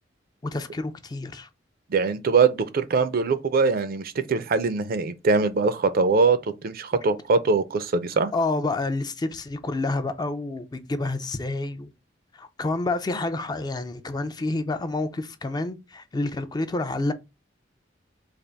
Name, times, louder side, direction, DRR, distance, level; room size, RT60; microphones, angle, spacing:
voice 1, 0.4-1.5 8.3-11.9 12.3-17.1, left 2 dB, 20° left, 0.4 m, -28 dB
voice 2, 1.9-8.3, right 4 dB, 50° right, 0.4 m, -22 dB
3.4 x 2.4 x 3.9 m
head